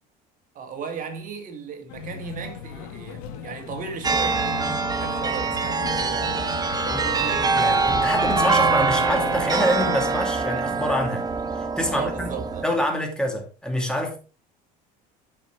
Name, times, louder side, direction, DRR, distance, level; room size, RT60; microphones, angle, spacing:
voice 1, 0.5-7.5 11.9-12.6, right 5 dB, 45° right, 2.3 m, -36 dB
sound 1, 1.9-10.1, left 9 dB, 85° left, 1.7 m, -36 dB
sound 2, 4.0-12.6, right 4 dB, 20° right, 1.0 m, -24 dB
voice 2, 6.9-11.2 11.8-12.3 12.6-14.2, equal, 5° left, 2.6 m, -26 dB
8.7 x 5.9 x 4.6 m
supercardioid pair, 115°, 19 cm